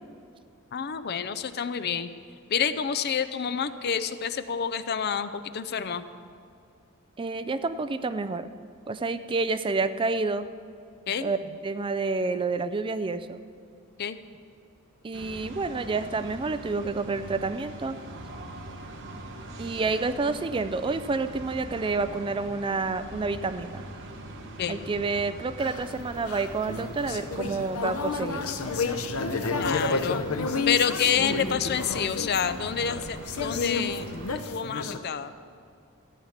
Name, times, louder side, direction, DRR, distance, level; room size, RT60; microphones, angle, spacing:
voice 1, 0.7-2.1 2.5-6.0 11.1-11.3 14.0-14.2 24.6-24.8 29.6-30.2 30.7-35.3, left 7 dB, 50° left, 12 dB, 0.5 m, -28 dB
voice 2, 7.2-8.5 8.9-10.5 11.2-13.4 15.0-18.0 19.6-23.8 24.7-28.5, right 3 dB, 25° right, 11 dB, 0.4 m, -29 dB
sound 1, 15.1-34.4, right 1 dB, 60° right, 1.2 m, -42 dB
sound 2, 25.6-35.0, left 4 dB, 90° left, 0.7 m, -31 dB
14.0 x 9.4 x 5.8 m, 2.4 s
head